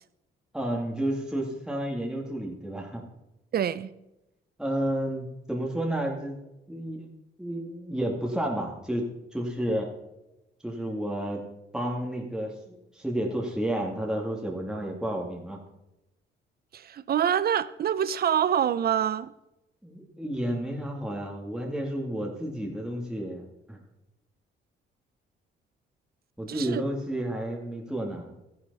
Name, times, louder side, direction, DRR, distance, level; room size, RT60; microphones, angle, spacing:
voice 1, 0.5-3.0 4.6-6.4 6.7-7.1 7.4-9.9 10.6-11.4 11.7-15.6 19.8-23.4 23.7-23.8 26.4-28.3, right 1 dB, 5° right, 2.1 m, -31 dB
voice 2, 3.5-3.9 16.7-19.3 26.5-26.8, right 9 dB, 50° right, 0.6 m, -26 dB
13.5 x 10.5 x 4.1 m
cardioid pair, 90°, 20 cm